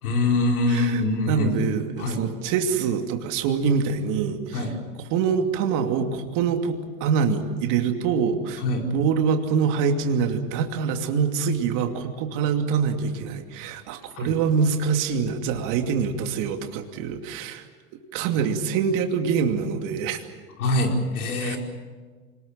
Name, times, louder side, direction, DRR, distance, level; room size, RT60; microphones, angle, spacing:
voice 1, 0.0-1.6 2.0-2.2 4.5-4.7 8.6-8.8 14.2-14.3 20.6-21.6, left 2 dB, 80° left, 1 dB, 5.1 m, -24 dB
voice 2, 0.7-1.0 1.3-4.7 5.1-8.6 8.9-17.6 18.1-20.2 21.4-21.6, right 6 dB, 45° right, 4 dB, 2.7 m, -25 dB
26.5 x 20.0 x 7.5 m, 1.4 s
hypercardioid pair, 120°, 43 cm